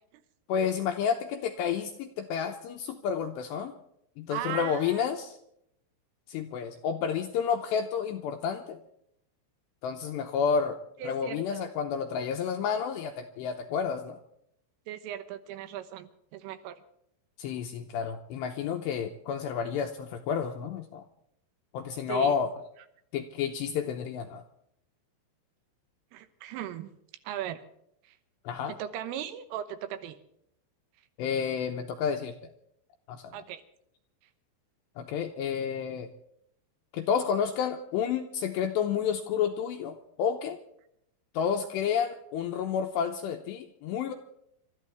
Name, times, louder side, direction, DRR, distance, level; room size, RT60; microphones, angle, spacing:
voice 1, 0.5-3.7 4.2-5.4 6.3-8.8 9.8-14.2 17.4-21.1 21.7-22.5 23.1-24.4 28.5-28.7 31.2-32.5 33.1-33.4 35.0-36.1 36.9-40.6 41.3-44.1, left 7 dB, 85° left, 5 dB, 2.6 m, -30 dB
voice 2, 4.3-5.0 11.0-11.7 14.9-16.8 22.1-22.3 26.1-26.9 27.3-27.6 28.1-28.2 28.7-30.2 33.3-33.6, right 11 dB, 85° right, 10 dB, 3.6 m, -38 dB
28.0 x 13.0 x 3.5 m, 0.74 s
omnidirectional pair, 5.8 m